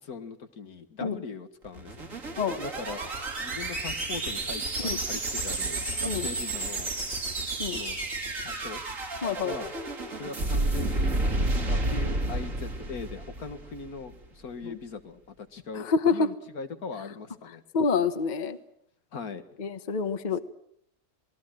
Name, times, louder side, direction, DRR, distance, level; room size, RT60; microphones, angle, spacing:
voice 1, 0.0-2.1 2.6-3.1 3.4-6.9 7.7-8.1 8.4-8.8 9.4-9.7 10.2-15.9 16.1-17.6 19.1-19.4, left 4 dB, 80° left, 8 dB, 2.2 m, -40 dB
sound 1, 1.6-14.0, right 2 dB, 60° right, 3.1 m, -31 dB
voice 2, 9.2-9.5 14.6-14.8 15.7-16.3 17.7-18.6 19.6-20.4, left 5 dB, 35° left, 11 dB, 1.1 m, -27 dB
27.5 x 19.5 x 7.6 m, 0.73 s
omnidirectional pair, 1.5 m